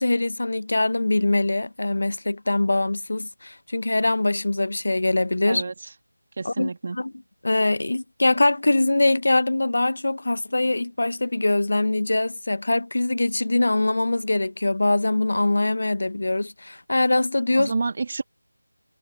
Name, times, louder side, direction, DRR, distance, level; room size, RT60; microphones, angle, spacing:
voice 1, 0.0-5.6 6.4-7.1 7.4-17.7, left 2 dB, 60° left, 0.7 m, -23 dB
voice 2, 6.4-7.0 17.6-18.2, right 4 dB, 40° right, 1.7 m, -28 dB
figure-of-eight pair, 165°, 0 cm